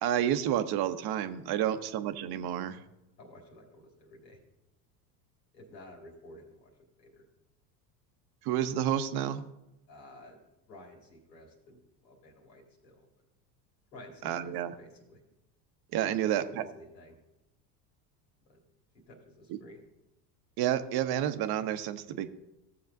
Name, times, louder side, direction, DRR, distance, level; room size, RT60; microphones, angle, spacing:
voice 1, 0.0-2.8 8.4-9.5 14.2-14.7 15.9-16.6 19.5-19.6 20.6-22.3, right 11 dB, 50° right, 11 dB, 0.8 m, -30 dB
voice 2, 3.2-4.4 5.5-6.7 7.0-7.2 9.9-10.4 10.7-13.1 13.9-15.2 16.0-17.2 18.5-18.6 19.1-19.8, left 1 dB, 85° left, 0 dB, 2.3 m, -52 dB
15.0 x 7.0 x 2.6 m, 0.93 s
hypercardioid pair, 80°, 49 cm